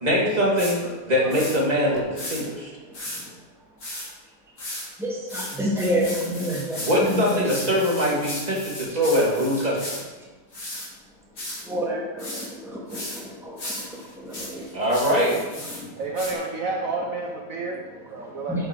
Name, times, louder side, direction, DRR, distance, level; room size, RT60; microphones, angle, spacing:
voice 1, 0.0-0.8 1.1-2.7 6.8-10.0 14.7-15.4, equal, 25° right, -5 dB, 2.7 m, -22 dB
sound 1, 0.6-0.8 1.3-1.6 2.2-2.4 2.9-3.2 3.8-4.1 4.6-4.9 5.3-10.0 10.5-10.9 11.4-11.6 12.2-12.5 12.9-13.2 13.6-15.8 16.2-16.3, left 1 dB, 80° left, 4.1 m, -35 dB
voice 2, 2.5-3.3 4.7-7.8 8.9-9.0 9.6-9.7 11.6-14.9 15.7-16.1 17.5-18.7, equal, ahead, -4 dB, 2.0 m, -31 dB
voice 3, 15.9-17.8 18.1-18.7, right 3 dB, 60° right, 0 dB, 1.4 m, -30 dB
10.0 x 8.2 x 4.8 m, 1.3 s
omnidirectional pair, 1.7 m